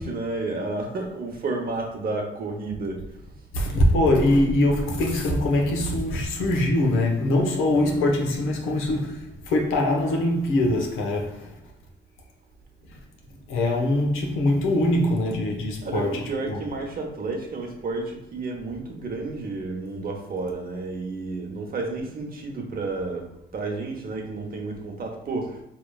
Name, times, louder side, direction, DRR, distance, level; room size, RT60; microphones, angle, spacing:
voice 1, 0.0-3.0 15.8-23.3 23.5-25.6, right 3 dB, 50° right, 0.9 m, -31 dB
voice 2, 3.5-11.5 12.9-13.0 13.5-16.6, left 1 dB, 85° left, 0.8 m, -23 dB
4.6 x 2.9 x 2.3 m
cardioid pair, 90°, 20 cm